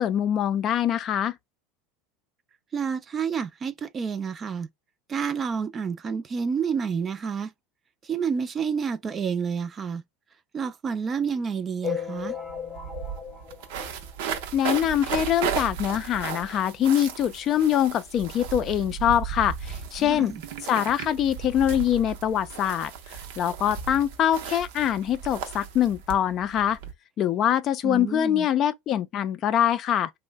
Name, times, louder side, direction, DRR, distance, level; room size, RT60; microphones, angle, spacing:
voice 1, 0.0-1.4 14.5-20.3 20.7-26.8 27.2-30.1, left 10 dB, 40° left, 0.4 m, -24 dB
voice 2, 2.7-4.7 5.1-7.5 8.0-10.0 10.5-12.4 20.0-20.4 27.8-28.5, right 6 dB, 25° right, 0.4 m, -29 dB
sound 1, 11.8-14.7 15.2-15.3 15.4-15.6 15.9-16.0 16.8-16.9 17.4-17.5, left 8 dB, 20° left, 0.8 m, -36 dB
sound 2, 12.2-12.3 12.5-26.9, right 7 dB, 70° right, 0.6 m, -35 dB
3.1 x 2.1 x 3.3 m
supercardioid pair, 120°, 0 cm